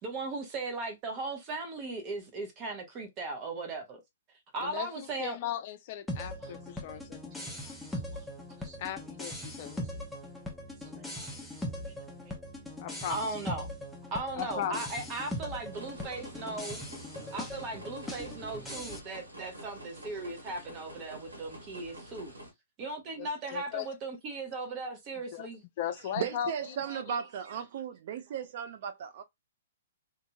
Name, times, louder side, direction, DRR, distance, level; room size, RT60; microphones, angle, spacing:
voice 1, 0.0-4.0 4.5-5.4 6.2-6.5 7.5-7.7 8.1-8.2 8.6-8.8 9.6-9.7 10.8-11.3 13.1-13.7 14.1-16.8 17.3-22.3 22.8-25.6, right 3 dB, 30° right, 1.1 m, -38 dB
voice 2, 4.6-7.0 8.8-9.8 12.8-13.2 14.4-14.8 23.2-23.9 25.3-25.5 25.8-26.5 26.9-27.2, left 10 dB, 45° left, 0.5 m, -37 dB
sound 1, 6.1-19.0, left 1 dB, 5° left, 0.7 m, -40 dB
sound 2, 15.7-22.5, right 1 dB, 85° right, 1.4 m, -48 dB
voice 3, 26.1-29.2, right 8 dB, 50° right, 0.3 m, -36 dB
2.8 x 2.6 x 2.3 m
hypercardioid pair, 125°, 0 cm